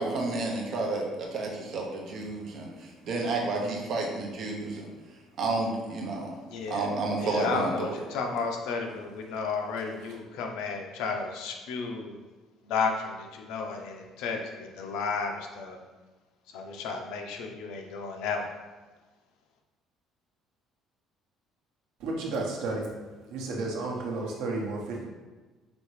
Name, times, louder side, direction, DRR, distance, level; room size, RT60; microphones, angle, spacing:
voice 1, 0.0-2.7 3.0-4.9 5.4-6.3 6.7-8.0, right 3 dB, 40° right, 0 dB, 0.7 m, -30 dB
voice 2, 6.5-6.9 7.2-12.2 12.6-15.8 16.5-18.5, left 5 dB, 80° left, 3 dB, 0.6 m, -33 dB
voice 3, 22.0-22.9 23.3-25.0, right 3 dB, 75° right, -1 dB, 0.9 m, -32 dB
5.2 x 2.7 x 3.1 m, 1.3 s
cardioid pair, 175°, 0 cm